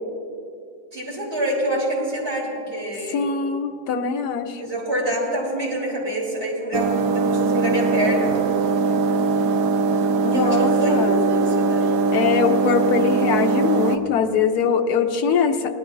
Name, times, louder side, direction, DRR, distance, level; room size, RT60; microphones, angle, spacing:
voice 1, 0.9-3.2 4.6-8.3 10.3-11.9, right 1 dB, 40° right, -6 dB, 3.8 m, -26 dB
voice 2, 3.1-4.6 10.2-11.2 12.1-15.7, left 6 dB, 80° left, 5 dB, 1.3 m, -22 dB
sound 1, 6.7-14.0, right 4 dB, 90° right, 1.3 m, -21 dB
18.5 x 12.5 x 2.6 m, 2.5 s
omnidirectional pair, 1.7 m